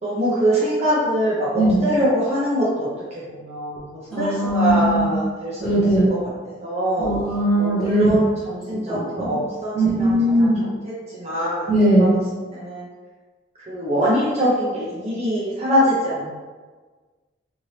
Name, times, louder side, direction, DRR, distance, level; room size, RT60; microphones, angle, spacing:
voice 1, 0.0-5.8 6.6-7.1 7.6-10.5 10.8-11.7 12.0-12.2 12.5-12.9 13.6-16.3, equal, 30° right, -8 dB, 0.5 m, -23 dB
voice 2, 4.1-5.1 5.6-6.1 7.0-8.1 8.9-9.3 9.7-10.6 11.7-12.2, right 1 dB, ahead, -11 dB, 1.1 m, -19 dB
2.7 x 2.6 x 3.1 m, 1.4 s
head